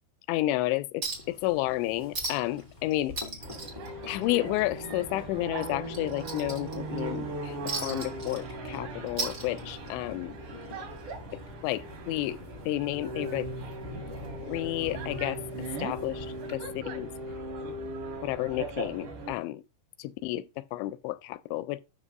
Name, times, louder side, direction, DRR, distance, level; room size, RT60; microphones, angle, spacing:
voice 1, 0.3-3.2 4.1-7.6 7.8-10.4 11.6-12.4 12.7-13.5 14.4-15.4 15.8-17.1 18.2-19.6 20.0-21.8, left 16 dB, 85° left, 2.9 m, -31 dB
sound 1, 1.0-16.6, left 3 dB, 30° left, 1.0 m, -49 dB
Chink clink, 1.0-1.4 1.7-1.8 2.1-2.6 2.9-4.6 4.9-5.1 5.6-7.0 7.7-8.8 9.1-10.0 11.1-11.2, right 2 dB, 50° right, 1.0 m, -36 dB
sound 2, 3.4-19.3, right 2 dB, 70° right, 5.2 m, -38 dB
12.5 x 5.5 x 2.5 m
omnidirectional pair, 5.2 m